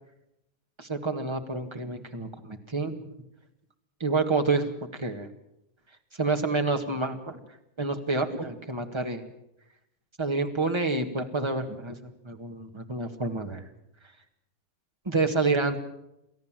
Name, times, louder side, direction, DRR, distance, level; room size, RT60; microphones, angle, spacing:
voice 1, 0.8-3.0 4.0-4.7 5.0-5.3 6.2-7.4 7.8-9.2 10.2-13.7 15.1-15.8, right 3 dB, 15° right, 5 dB, 1.9 m, -28 dB
29.5 x 13.5 x 7.6 m, 0.84 s
omnidirectional pair, 1.7 m